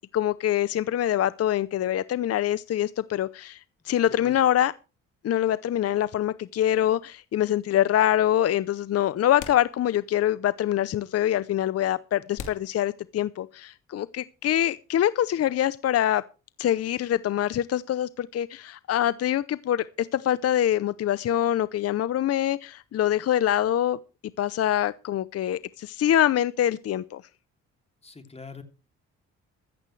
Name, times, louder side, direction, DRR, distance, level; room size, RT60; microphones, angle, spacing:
voice 1, 0.1-4.7 5.2-16.2 16.6-24.0 24.4-27.2, left 11 dB, 55° left, 0.6 m, -25 dB
voice 2, 3.9-4.4 28.0-28.6, left 4 dB, 20° left, 2.9 m, -44 dB
sound 1, 9.4-10.3 10.6-10.7 11.4-11.5 12.3-13.6, left 7 dB, 75° left, 2.8 m, -43 dB
14.0 x 14.0 x 3.3 m
cardioid pair, 90°, 30 cm